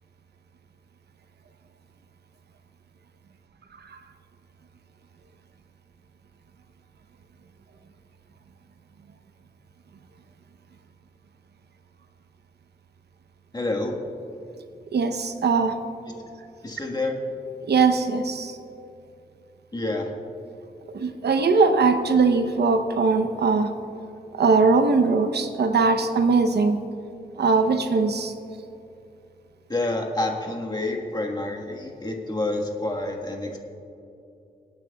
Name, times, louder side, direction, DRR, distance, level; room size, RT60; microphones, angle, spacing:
voice 1, 13.5-14.0 16.6-17.2 19.7-20.1 29.7-33.6, left 2 dB, 25° left, 1 dB, 1.4 m, -28 dB
voice 2, 14.9-15.8 17.7-18.6 20.9-23.7 24.3-26.8 27.4-28.3, right 4 dB, 85° right, 7 dB, 0.8 m, -21 dB
26.0 x 9.1 x 2.3 m, 2.7 s
wide cardioid pair, 105°, 17 cm